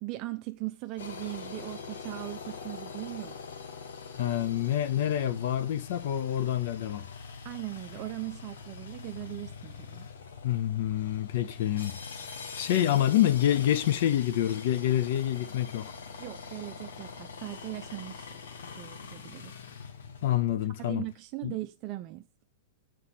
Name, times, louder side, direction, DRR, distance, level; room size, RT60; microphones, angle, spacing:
voice 1, 0.0-3.4 7.4-10.1 16.2-18.3 18.7-19.5 20.5-22.2, right 18 dB, 45° right, 0.5 m, -39 dB
sound 1, 1.0-20.8, left 5 dB, 80° left, 1.2 m, -43 dB
voice 2, 4.2-7.1 10.4-12.0 12.2-15.9 20.2-21.1 21.4-21.5, left 12 dB, 65° left, 0.6 m, -27 dB
6.5 x 4.7 x 5.8 m
hypercardioid pair, 120°, 0 cm